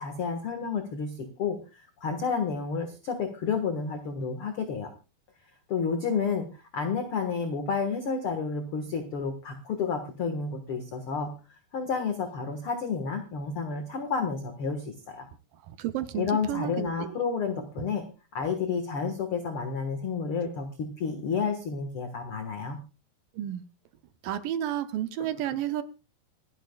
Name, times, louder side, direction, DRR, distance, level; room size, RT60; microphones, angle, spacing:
voice 1, 0.0-4.9 5.7-11.3 11.7-15.3 16.1-18.1 18.3-22.8, left 5 dB, 50° left, 6 dB, 1.7 m, -30 dB
voice 2, 15.7-17.2 23.3-23.6 24.2-25.8, right 11 dB, 75° right, 11 dB, 2.2 m, -31 dB
26.5 x 11.0 x 2.3 m, 0.31 s
omnidirectional pair, 4.4 m